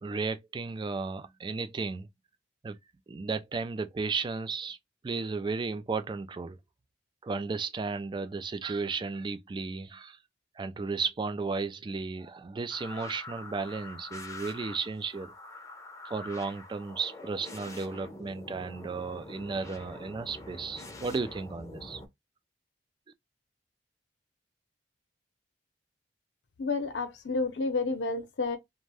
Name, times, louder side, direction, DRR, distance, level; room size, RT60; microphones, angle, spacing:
voice 1, 0.0-2.1 2.6-2.8 3.1-4.8 5.0-6.6 7.2-10.2 10.6-15.3 16.1-22.0, right 4 dB, 25° right, 0.3 m, -34 dB
sound 1, 12.7-22.1, left 2 dB, 20° left, 0.6 m, -45 dB
voice 2, 26.6-28.6, left 3 dB, 70° left, 0.7 m, -30 dB
2.5 x 2.1 x 3.3 m
head